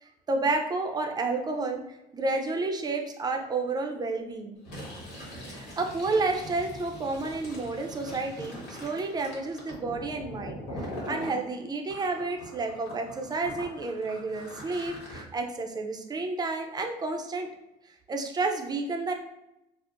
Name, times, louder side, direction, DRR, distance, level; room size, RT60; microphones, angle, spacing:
voice 1, 0.0-1.8 2.1-4.6 5.5-17.5 18.1-19.1, right 3 dB, 25° right, 3 dB, 0.5 m, -31 dB
Fill (with liquid), 4.6-11.4 11.9-15.2, equal, 75° left, 1.4 m, -42 dB
4.3 x 2.1 x 2.5 m, 0.88 s
cardioid pair, 110°, 17 cm